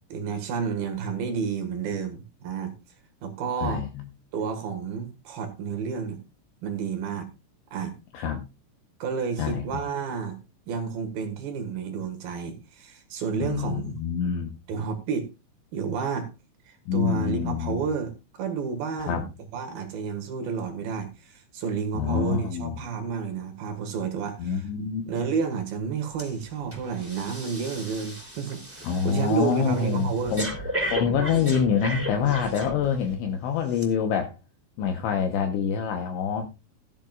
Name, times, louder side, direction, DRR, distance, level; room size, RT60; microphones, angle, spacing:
voice 1, 0.1-2.7 3.2-3.9 4.3-6.2 6.6-7.3 7.7-8.0 9.0-10.4 10.7-13.9 14.7-15.3 15.7-16.3 16.7-19.3 19.5-24.7 25.1-30.4, right 6 dB, 60° right, 6 dB, 2.9 m, -30 dB
voice 2, 3.6-4.0 8.1-8.4 9.4-9.6 13.4-14.6 16.9-17.8 19.0-19.2 21.9-22.8 24.4-25.0 28.8-34.4 34.8-36.4, left 7 dB, 75° left, 4 dB, 3.1 m, -26 dB
Breathing, 26.2-26.4 26.7-33.1 33.7-33.8, equal, 5° right, 1.7 m, -35 dB
16.0 x 11.0 x 2.4 m, 0.27 s
omnidirectional pair, 6.0 m